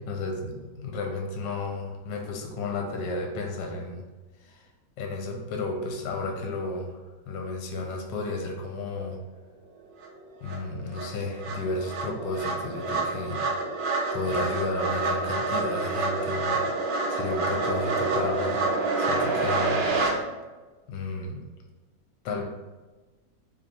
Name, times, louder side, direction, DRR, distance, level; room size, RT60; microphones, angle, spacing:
voice 1, 0.0-4.0 4.4-4.6 5.0-7.0 7.3-9.2 10.4-13.4 14.1-16.6 17.1-18.6 19.0-19.8 20.9-21.4 22.2-22.4, left 2 dB, 75° left, 1 dB, 1.3 m, -32 dB
sound 1, 10.0-10.1 10.5-20.1, right 3 dB, 70° right, 1.3 m, -28 dB
3.3 x 2.6 x 4.2 m, 1.2 s
omnidirectional pair, 2.1 m